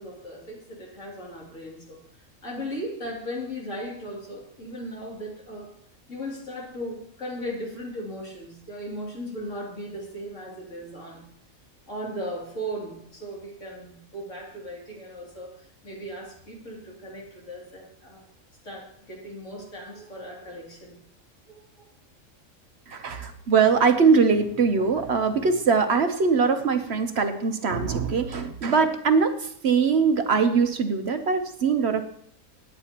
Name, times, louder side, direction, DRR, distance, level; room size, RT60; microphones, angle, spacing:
voice 1, 0.0-5.7 6.1-11.2 11.9-18.2 18.6-21.0 21.5-21.8, equal, 60° left, -3 dB, 3.3 m, -37 dB
voice 2, 22.9-32.0, right 5 dB, 50° right, 7 dB, 1.0 m, -22 dB
20.0 x 8.9 x 2.9 m, 0.67 s
omnidirectional pair, 1.5 m